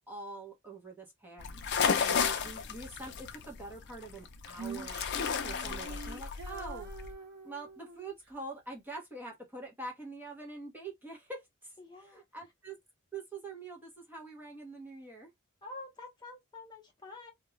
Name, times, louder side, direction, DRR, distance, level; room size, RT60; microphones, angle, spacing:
voice 1, 0.1-1.6 1.9-5.0 5.4-6.9 7.4-12.8 13.1-15.3, right 3 dB, 10° right, 0.8 m, -45 dB
sound 1, 1.4-7.1, left 6 dB, 55° left, 0.5 m, -33 dB
Female singing, 4.5-8.1, right 3 dB, 50° right, 1.1 m, -45 dB
voice 2, 11.8-12.2 15.6-17.3, left 3 dB, 20° left, 0.8 m, -47 dB
2.4 x 2.3 x 3.0 m
head